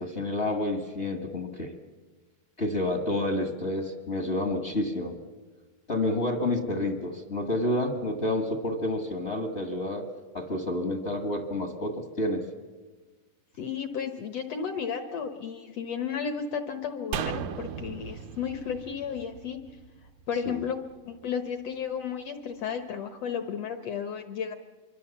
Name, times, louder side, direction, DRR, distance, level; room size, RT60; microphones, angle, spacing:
voice 1, 0.0-1.7 2.6-5.2 5.9-10.0 10.3-12.4 20.4-20.6, left 1 dB, 45° left, 4 dB, 0.8 m, -29 dB
voice 2, 13.6-19.6 20.3-20.8 21.0-24.5, left 7 dB, 70° left, 7 dB, 1.5 m, -33 dB
sound 1, 17.1-20.5 20.8-20.9, right 8 dB, 75° right, 2.4 m, -36 dB
26.0 x 23.5 x 7.2 m, 1.3 s
omnidirectional pair, 4.1 m